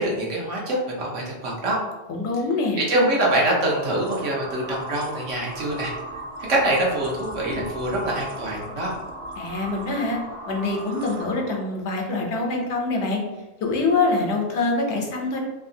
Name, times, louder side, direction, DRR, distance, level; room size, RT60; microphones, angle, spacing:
voice 1, 0.0-1.8 2.8-5.9 6.5-9.0, right 1 dB, 80° right, -3 dB, 1.2 m, -24 dB
voice 2, 2.1-2.8 9.4-10.2 10.5-13.2 13.6-15.4, left 3 dB, 70° left, 1 dB, 0.9 m, -24 dB
sound 1, 3.6-11.7, right 1 dB, 65° right, 0.7 m, -37 dB
2.9 x 2.7 x 2.6 m, 1.1 s
omnidirectional pair, 1.3 m